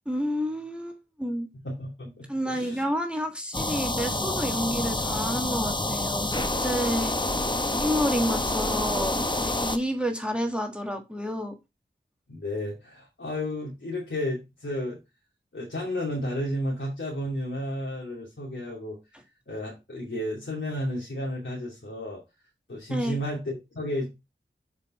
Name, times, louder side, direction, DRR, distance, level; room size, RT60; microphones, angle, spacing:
voice 1, 0.0-1.5 2.3-7.1 7.8-11.5 22.9-23.2, equal, 5° right, 4 dB, 1.5 m, -30 dB
voice 2, 1.6-2.8 12.3-15.0 15.5-22.2 22.7-24.1, left 1 dB, 80° left, -4 dB, 2.5 m, -32 dB
sound 1, 3.5-9.8, left 2 dB, 25° left, 0.8 m, -28 dB
6.7 x 5.4 x 4.2 m, 0.24 s
wide cardioid pair, 55°, 20 cm